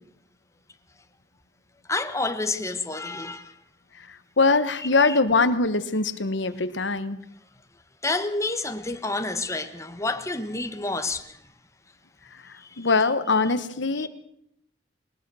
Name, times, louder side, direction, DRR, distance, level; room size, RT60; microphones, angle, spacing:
voice 1, 1.9-3.5 5.0-5.2 8.0-11.4 12.6-12.9 14.0-14.1, left 3 dB, 15° left, 1.4 m, -29 dB
voice 2, 4.4-7.2 12.8-14.1, left 3 dB, 90° left, 1.3 m, -22 dB
21.0 x 20.5 x 6.3 m
head